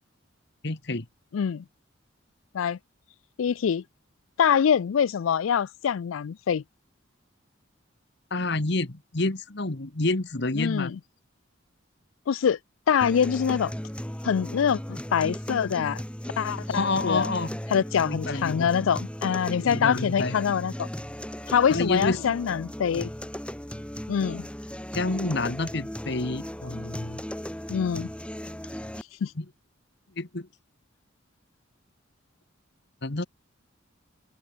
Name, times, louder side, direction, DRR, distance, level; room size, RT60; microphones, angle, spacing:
voice 1, 0.6-1.1 8.3-10.9 16.7-17.5 18.0-18.7 19.7-20.3 21.7-22.2 24.9-27.2 29.4-29.5 30.2-30.5 33.0-33.3, left 2 dB, 55° left, 1.5 m, -28 dB
voice 2, 1.3-1.6 2.5-2.8 3.4-3.8 4.4-6.6 10.5-11.0 12.3-12.6 12.9-13.7 14.2-16.0 16.4-17.3 17.7-20.9 21.5-23.1 24.1-24.5 27.7-28.1 29.2-29.3, left 7 dB, 85° left, 0.4 m, -24 dB
sound 1, 13.0-29.0, equal, 5° left, 3.2 m, -36 dB
head